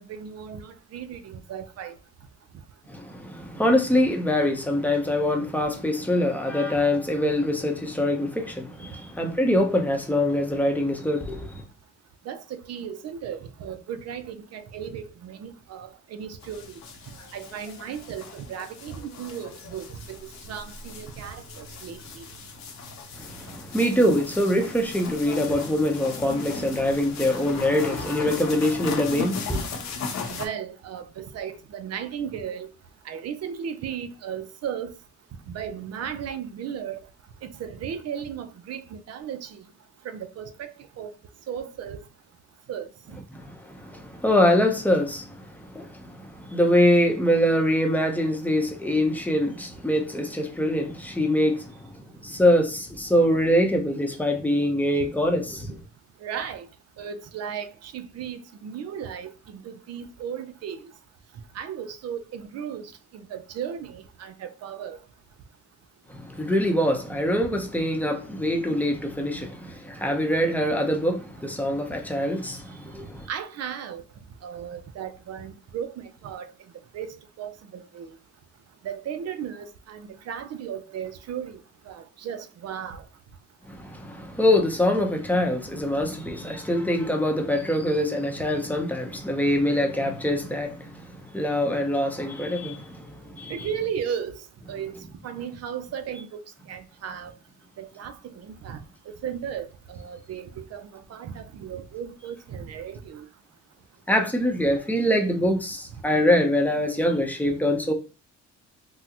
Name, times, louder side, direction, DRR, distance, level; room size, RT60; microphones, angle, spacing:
voice 1, 0.0-1.9 12.3-16.6 17.3-22.2 30.3-32.7 33.1-34.9 35.5-37.0 37.4-39.6 40.0-41.1 41.5-42.0 42.7-43.2 56.2-56.7 57.0-60.9 61.5-65.0 67.5-67.6 73.3-74.0 74.4-76.5 76.9-78.1 78.8-81.6 81.9-83.0 93.5-94.4 94.7-96.4 96.7-97.3 97.8-98.8 99.1-103.3, right 8 dB, 55° right, 0.5 m, -35 dB
voice 2, 2.9-11.6 23.2-29.8 43.3-55.8 66.1-73.3 83.7-93.7 104.1-107.9, left 1 dB, 5° left, 0.6 m, -24 dB
sound 1, 16.4-30.5, left 5 dB, 65° left, 0.8 m, -37 dB
3.6 x 2.0 x 2.8 m
cardioid pair, 90°, 30 cm